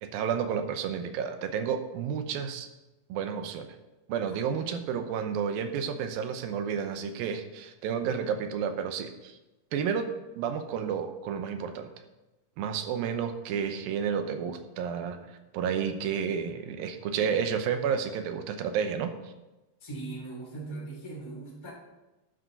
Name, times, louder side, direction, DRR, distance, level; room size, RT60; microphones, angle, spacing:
voice 1, 0.0-2.7 3.1-3.8 4.1-9.4 9.7-11.9 12.6-19.3, right 7 dB, 85° right, 8 dB, 2.7 m, -31 dB
voice 2, 19.8-21.7, right 3 dB, 10° left, -4 dB, 2.6 m, -39 dB
12.5 x 9.3 x 4.0 m, 1.0 s
omnidirectional pair, 4.1 m